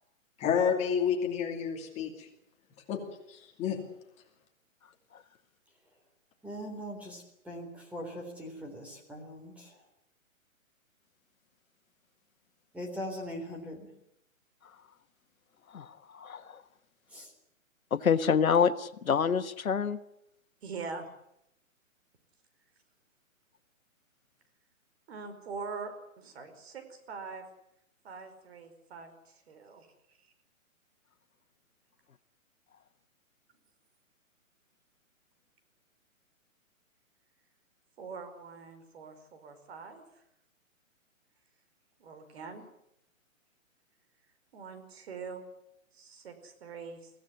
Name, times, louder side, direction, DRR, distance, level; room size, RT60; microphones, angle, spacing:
voice 1, 0.4-2.3 2.9-3.0 3.3-3.8, left 7 dB, 15° left, 2 dB, 2.7 m, -29 dB
voice 2, 6.4-9.8 12.7-13.9 17.1-17.3, equal, 5° right, 1 dB, 3.6 m, -41 dB
voice 3, 15.7-16.4 17.9-20.0, left 7 dB, 85° left, 11 dB, 1.6 m, -27 dB
voice 4, 20.6-21.1 25.1-27.5 28.0-29.9 38.0-40.0 42.0-42.6 44.5-45.4 45.9-47.1, right 4 dB, 50° right, 8 dB, 5.0 m, -43 dB
23.5 x 16.5 x 9.6 m, 0.79 s
hypercardioid pair, 160°, 41 cm